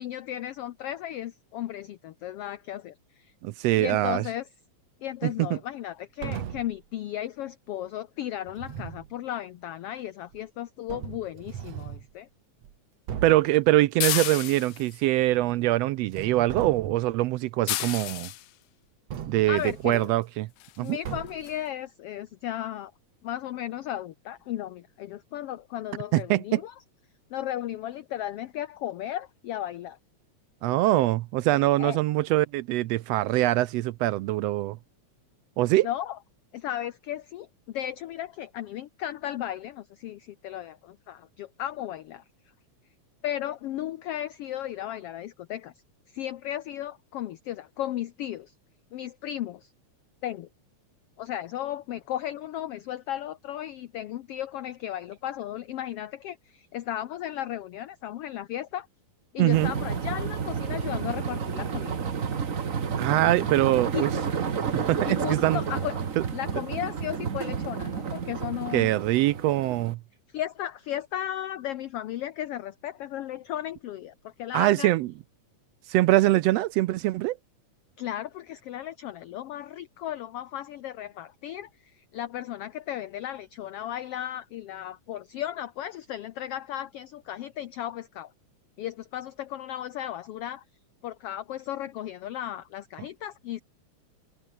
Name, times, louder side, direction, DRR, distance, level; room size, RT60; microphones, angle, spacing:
voice 1, 0.0-3.3 3.8-4.5 5.0-12.3 19.5-20.1 20.8-22.9 23.2-26.7 27.3-30.0 31.8-32.0 35.8-36.2 36.5-42.2 43.2-45.7 46.1-48.5 48.9-49.7 50.2-50.5 51.2-58.9 59.3-62.0 63.9-64.2 65.0-66.0 66.3-68.9 70.3-74.9 78.0-81.7 82.0-88.3 88.8-90.6 91.0-93.6, left 12 dB, 70° left, 1.5 m, -35 dB
voice 2, 3.4-4.2 5.2-5.6 13.2-18.3 19.3-20.5 20.8-21.0 26.1-26.6 30.6-34.8 35.6-35.9 59.4-59.7 63.0-64.1 64.6-65.6 66.2-66.3 68.7-70.0 74.5-75.1 75.9-77.4, right 16 dB, 80° right, 1.5 m, -23 dB
sound 1, 6.2-6.8 8.5-9.1 10.3-10.4 10.9-12.1 12.6-12.7 13.1-13.5 15.1-15.8 16.1-17.2 19.1-20.1 21.0-21.6, right 9 dB, 60° right, 2.8 m, -38 dB
sound 2, 14.0-15.0 17.7-18.5 19.9-20.0 20.6-20.8 21.1-21.2 21.5-21.6, left 17 dB, 85° left, 2.3 m, -30 dB
sound 3, 59.5-69.9, right 6 dB, 40° right, 1.2 m, -31 dB
omnidirectional pair, 3.4 m